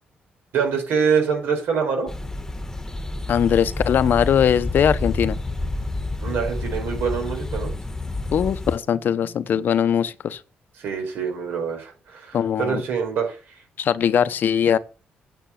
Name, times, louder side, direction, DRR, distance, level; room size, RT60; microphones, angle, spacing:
voice 1, 0.5-2.1 6.2-7.7 10.8-13.4, right 6 dB, 85° right, 4.8 m, -25 dB
sound 1, 2.1-8.8, left 2 dB, 15° left, 1.2 m, -29 dB
voice 2, 3.3-5.4 8.3-10.4 12.3-12.8 13.8-14.8, left 8 dB, 65° left, 0.8 m, -20 dB
9.3 x 6.0 x 7.4 m
cardioid pair, 90°, 4 cm